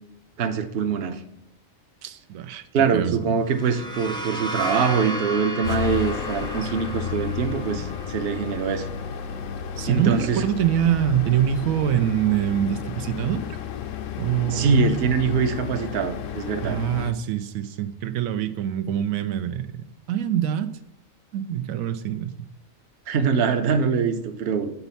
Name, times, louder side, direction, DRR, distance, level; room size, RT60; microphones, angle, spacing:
voice 1, 0.4-1.2 2.7-8.9 9.8-10.4 14.5-16.8 23.1-24.7, right 5 dB, 55° right, 8 dB, 0.8 m, -23 dB
voice 2, 2.0-2.7 2.9-3.2 6.6-6.7 9.8-13.6 14.2-14.9 16.6-20.7 21.3-22.3, right 10 dB, 85° right, 8 dB, 1.0 m, -24 dB
sound 1, 3.4-10.9, equal, 5° left, 0.5 m, -35 dB
sound 2, 5.6-17.1, left 9 dB, 75° left, 0.9 m, -33 dB
7.1 x 4.1 x 5.6 m, 0.85 s
omnidirectional pair, 1.4 m